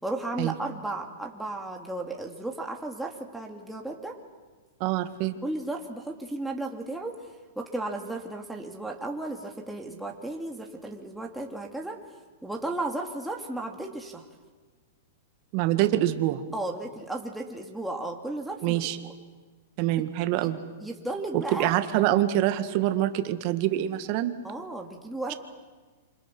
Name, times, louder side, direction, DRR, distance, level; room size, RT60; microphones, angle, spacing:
voice 1, 0.0-4.2 5.4-7.2 7.6-12.0 12.4-14.3 16.5-19.1 20.4-20.5 20.8-21.8 24.4-25.3, right 2 dB, 5° right, 0 dB, 2.6 m, -34 dB
voice 2, 4.8-5.3 15.5-16.4 18.6-19.0 19.8-20.6 21.3-24.3, right 13 dB, 45° right, 9 dB, 1.9 m, -25 dB
28.0 x 26.0 x 6.3 m, 1.4 s
hypercardioid pair, 130°, 0 cm